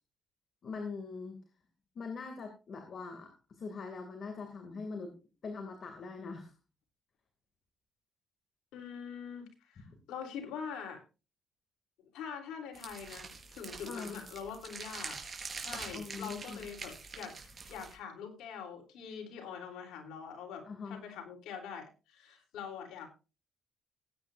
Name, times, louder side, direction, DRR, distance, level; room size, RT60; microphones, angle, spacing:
voice 1, 0.6-1.4 1.9-5.1 5.4-6.5 13.9-14.2 15.9-16.6 20.7-21.0, left 4 dB, 50° left, 5 dB, 2.6 m, -42 dB
voice 2, 8.7-11.0 12.1-15.2 15.5-17.4 17.7-23.1, left 7 dB, 90° left, 3 dB, 3.5 m, -44 dB
sound 1, 12.7-17.9, right 4 dB, 35° right, 4.6 m, -45 dB
19.0 x 9.3 x 2.6 m, 0.31 s
cardioid pair, 90°, 0 cm